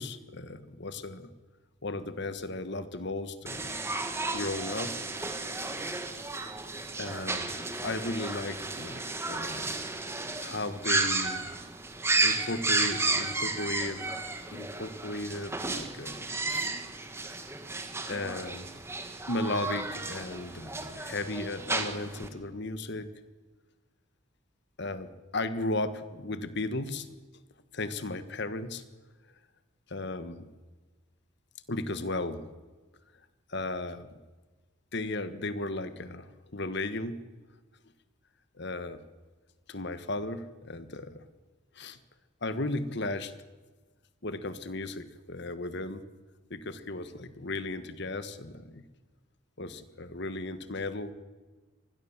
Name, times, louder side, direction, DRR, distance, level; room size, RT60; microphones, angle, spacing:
voice 1, 0.0-1.3 1.8-3.9 4.3-5.0 7.0-9.8 10.4-11.5 12.2-14.0 14.5-16.7 18.1-18.7 19.3-23.1 24.8-27.1 27.7-28.8 29.9-30.5 31.7-32.5 33.5-34.2 34.9-37.2 38.6-39.0 39.7-41.2 41.7-42.0 42.4-43.3 44.2-46.1 46.5-48.8 49.6-51.1, left 2 dB, 55° left, 12 dB, 1.5 m, -35 dB
sound 1, 3.5-22.3, right 3 dB, 10° right, 1.7 m, -33 dB
25.5 x 20.0 x 7.4 m, 1.3 s
head